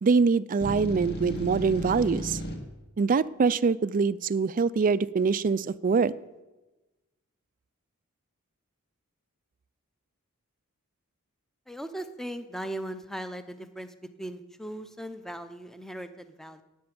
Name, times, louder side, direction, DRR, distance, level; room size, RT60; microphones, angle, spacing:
voice 1, 0.0-2.4 3.0-6.1, right 5 dB, 40° right, 18 dB, 0.4 m, -24 dB
sound 1, 0.6-2.5, equal, 45° left, 2.0 m, -34 dB
voice 2, 11.7-16.6, right 1 dB, ahead, 10 dB, 0.7 m, -38 dB
10.5 x 8.7 x 8.7 m, 1.1 s
head